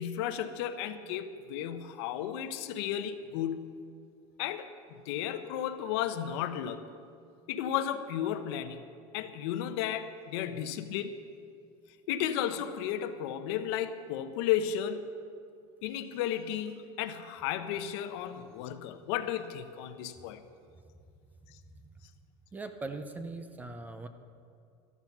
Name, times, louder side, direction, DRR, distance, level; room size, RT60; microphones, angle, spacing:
voice 1, 0.0-3.6 4.4-6.8 7.5-8.8 9.1-11.2 12.1-15.0 15.8-20.4, left 10 dB, 75° left, 10 dB, 0.9 m, -34 dB
voice 2, 21.7-22.0 22.5-24.1, right 3 dB, 10° right, 9 dB, 0.6 m, -41 dB
13.0 x 12.0 x 6.0 m, 2.4 s
cardioid pair, 165°, 14 cm